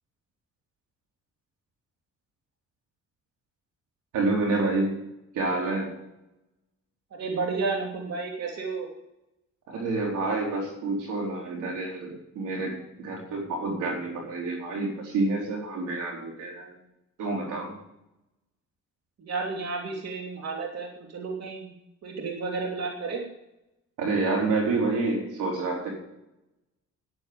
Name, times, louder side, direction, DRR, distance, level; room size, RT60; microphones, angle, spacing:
voice 1, 4.1-5.0 5.3-5.9 9.7-16.8 17.2-17.7 24.0-26.0, right 3 dB, 90° right, 0 dB, 4.4 m, -28 dB
voice 2, 7.1-8.9 19.2-21.7 22.0-23.2, right 4 dB, 60° right, 0 dB, 3.1 m, -32 dB
10.5 x 10.5 x 7.1 m, 0.88 s
cardioid pair, 90°, 30 cm